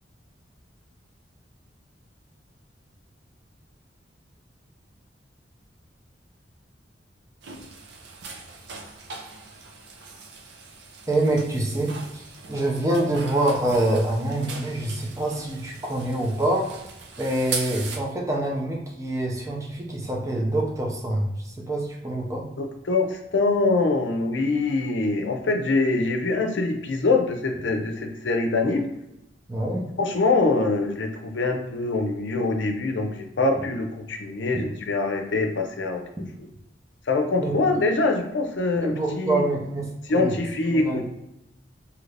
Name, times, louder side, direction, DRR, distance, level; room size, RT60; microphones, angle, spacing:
sound 1, 7.4-18.0, right 4 dB, 70° right, 0.6 m, -39 dB
voice 1, 11.1-16.7 17.2-22.5 29.5-29.8 37.4-37.5 38.7-40.3 40.7-41.0, right 1 dB, 15° right, -1 dB, 0.5 m, -26 dB
voice 2, 22.6-28.9 30.0-36.0 37.1-39.5 40.1-41.0, left 3 dB, 80° left, 4 dB, 0.5 m, -24 dB
2.8 x 2.5 x 3.2 m, 0.85 s
head